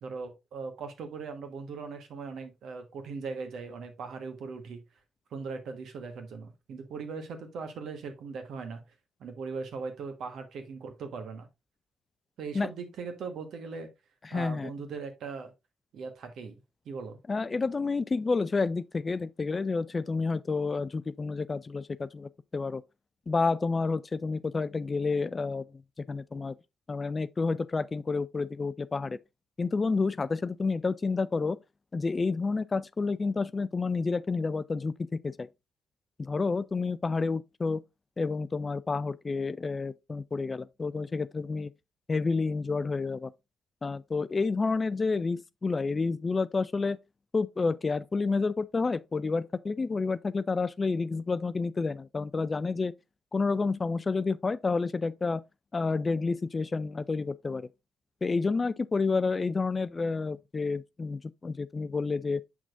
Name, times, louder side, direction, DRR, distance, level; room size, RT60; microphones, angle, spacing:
voice 1, 0.0-4.8 5.3-8.8 9.2-11.5 12.4-13.9 14.3-15.5 15.9-16.6 16.8-17.2, right 4 dB, 60° right, 1.3 m, -39 dB
voice 2, 14.3-14.7 17.3-22.8 23.3-25.6 26.1-26.5 26.9-29.2 29.6-31.6 31.9-34.9 35.2-35.5 36.2-37.8 38.2-41.7 42.1-43.3 43.8-47.0 47.3-52.9 53.3-55.4 55.7-57.7 58.2-62.4, left 4 dB, 35° left, 0.4 m, -29 dB
7.3 x 6.0 x 2.5 m
hypercardioid pair, 45°, 0 cm